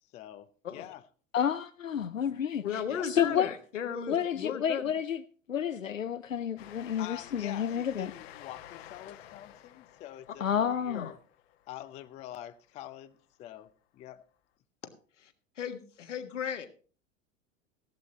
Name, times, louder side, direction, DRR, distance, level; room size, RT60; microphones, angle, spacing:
voice 1, 0.1-1.0 2.9-3.5 7.0-11.2 11.7-14.2, left 13 dB, 20° left, 0.4 m, -46 dB
voice 2, 1.3-3.5 4.1-5.2 5.5-8.1 10.4-11.1, left 8 dB, 80° left, 0.6 m, -30 dB
voice 3, 2.6-4.9 10.9-11.1 15.2-15.3 15.6-16.7, left 7 dB, 65° left, 1.6 m, -35 dB
Train, 6.6-12.7, left 12 dB, 50° left, 1.1 m, -52 dB
15.5 x 11.5 x 3.0 m
figure-of-eight pair, 85°, 39 cm